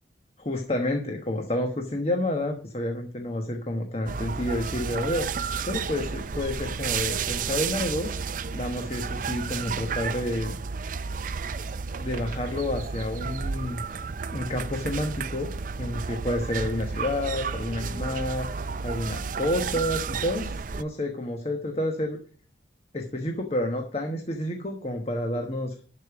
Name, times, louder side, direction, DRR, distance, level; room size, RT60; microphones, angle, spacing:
voice 1, 0.4-10.5 12.0-13.8 14.3-15.5 15.8-22.2 22.9-25.7, left 1 dB, 35° left, 4 dB, 1.1 m, -30 dB
sound 1, 4.1-20.8, right 5 dB, 45° right, 0.4 m, -32 dB
12.0 x 5.2 x 6.8 m, 0.42 s
head